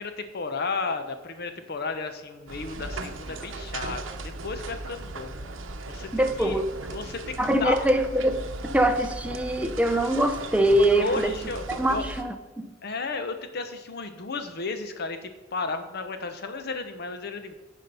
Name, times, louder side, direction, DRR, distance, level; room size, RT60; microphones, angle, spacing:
voice 1, 0.0-5.3 5.9-6.1 6.4-6.6 6.9-7.8 11.0-12.1 12.8-17.5, left 4 dB, 55° left, 8 dB, 0.8 m, -33 dB
sound 1, 2.5-12.2, right 2 dB, 80° right, 0.8 m, -37 dB
voice 2, 6.1-6.7 7.4-8.4 8.7-11.3 11.8-12.7, right 1 dB, 5° right, 7 dB, 0.6 m, -23 dB
10.0 x 5.1 x 5.4 m, 1.2 s
head